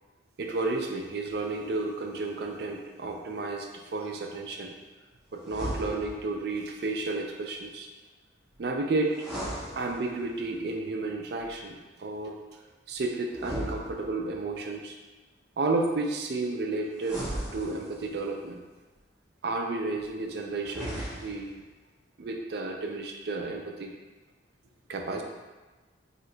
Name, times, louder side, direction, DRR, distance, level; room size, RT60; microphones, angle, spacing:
voice 1, 0.4-4.7 5.3-7.9 8.6-9.2 9.8-12.4 12.9-15.0 15.6-17.2 17.5-18.6 19.4-21.6 22.2-23.9 24.9-25.2, right 3 dB, 55° right, 2 dB, 0.4 m, -32 dB
sound 1, 5.4-6.4 9.1-10.4 13.3-14.5 17.0-18.2 20.6-21.6, right 1 dB, 5° right, 0.7 m, -37 dB
2.8 x 2.2 x 3.8 m, 1.2 s
head